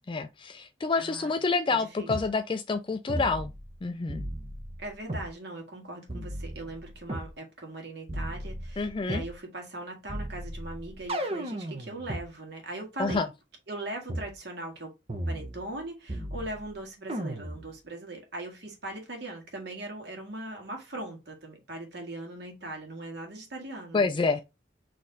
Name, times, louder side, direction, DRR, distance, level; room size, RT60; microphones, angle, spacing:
voice 1, 0.0-3.5 3.8-4.2 8.8-9.2 13.0-13.3 23.9-24.4, left 4 dB, 30° left, 0.3 m, -28 dB
voice 2, 1.0-1.4 1.7-2.1 4.8-13.2 13.7-14.9 15.3-24.1, right 2 dB, 65° right, 1.8 m, -40 dB
sound 1, 2.1-2.3 3.1-3.8 4.1-5.3 6.1-7.3 8.1-9.3 10.1-12.2 13.1-13.2 14.1-14.3 15.1-15.8 16.1-16.7 17.1-17.7, right 1 dB, 35° right, 0.8 m, -35 dB
4.3 x 3.1 x 3.8 m
head